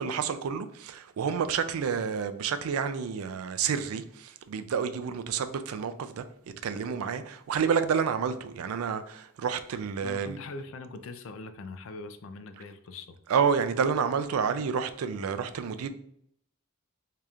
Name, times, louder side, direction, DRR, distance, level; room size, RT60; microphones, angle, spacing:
voice 1, 0.0-6.3 6.6-10.4 13.3-15.9, right 6 dB, 85° right, 0.4 m, -29 dB
voice 2, 10.0-13.2, left 3 dB, 65° left, 0.4 m, -42 dB
4.8 x 2.8 x 2.4 m
head